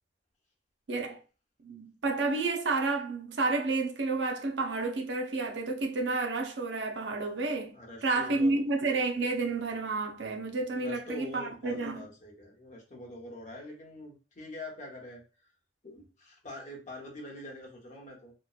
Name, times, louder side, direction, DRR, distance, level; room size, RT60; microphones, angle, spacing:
voice 1, 0.9-1.2 1.6-7.7 8.0-12.1, right 3 dB, 75° right, 0.6 m, -30 dB
voice 2, 7.7-8.7 10.7-15.5 15.8-18.3, left 1 dB, 40° left, 0.9 m, -45 dB
3.0 x 2.1 x 2.3 m
head